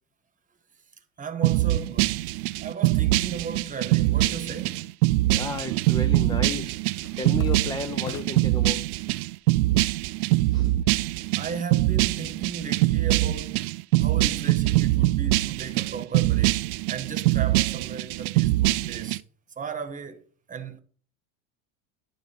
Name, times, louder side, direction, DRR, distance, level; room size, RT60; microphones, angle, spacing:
voice 1, 1.2-4.9 11.3-19.2 19.6-20.8, right 6 dB, 20° right, 1.2 m, -36 dB
sound 1, 1.4-19.2, right 18 dB, 90° right, 0.5 m, -23 dB
sound 2, 5.2-5.5 5.8-8.6 9.1-9.7 10.0-11.7, left 9 dB, 40° left, 0.8 m, -45 dB
voice 2, 5.3-6.9 7.2-8.9 10.5-10.7, left 4 dB, 10° left, 0.4 m, -33 dB
11.0 x 3.9 x 5.5 m
supercardioid pair, 120°, 43 cm